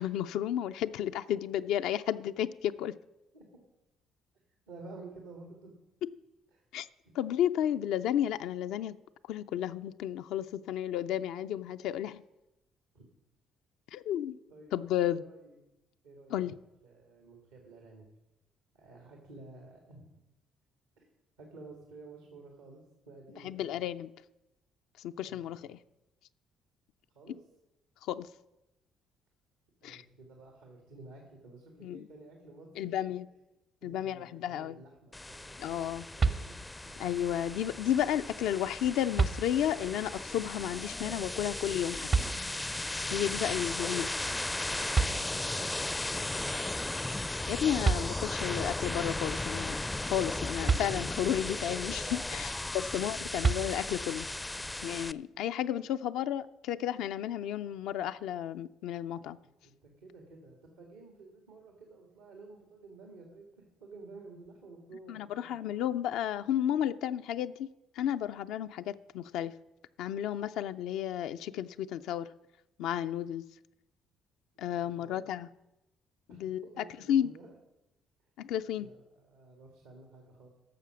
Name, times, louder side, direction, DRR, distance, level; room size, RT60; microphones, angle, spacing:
voice 1, 0.0-2.9 6.7-6.9 7.2-9.0 9.3-12.2 13.9-14.4 14.7-15.2 16.3-16.5 23.4-24.1 25.0-25.8 28.1-28.3 29.8-30.0 31.8-32.0 32.8-33.3 33.8-34.8 35.6-36.1 37.0-42.1 43.1-44.1 47.5-49.8 50.1-54.3 54.8-59.4 65.1-67.7 68.0-69.5 70.0-72.3 72.8-73.5 74.6-75.5 76.4-77.3 78.4-78.9, left 10 dB, 75° left, 10 dB, 0.4 m, -32 dB
voice 2, 4.7-5.8 6.5-6.6 7.0-7.1 12.9-13.0 14.5-14.7 15.0-15.6 16.0-16.5 16.8-18.1 18.7-20.2 21.0-21.1 21.4-23.8 25.3-25.7 27.1-27.4 29.8-33.1 33.8-35.6 36.1-36.5 36.8-36.9 44.2-46.7 52.3-52.4 54.6-54.7 59.6-65.8 74.7-75.3 76.3-77.5 78.8-80.5, right 3 dB, 90° right, 1 dB, 1.8 m, -52 dB
sound 1, 35.1-55.1, left 2 dB, 15° left, 0.4 m, -36 dB
sound 2, 36.2-37.0 38.5-38.6 39.2-39.9 42.1-42.9 44.6-44.7 44.9-45.8 47.5-47.6 47.8-48.6 50.7-51.5 53.4-54.2, right 4 dB, 45° right, 0.7 m, -31 dB
11.5 x 6.8 x 6.1 m, 0.95 s
hypercardioid pair, 55°, 0 cm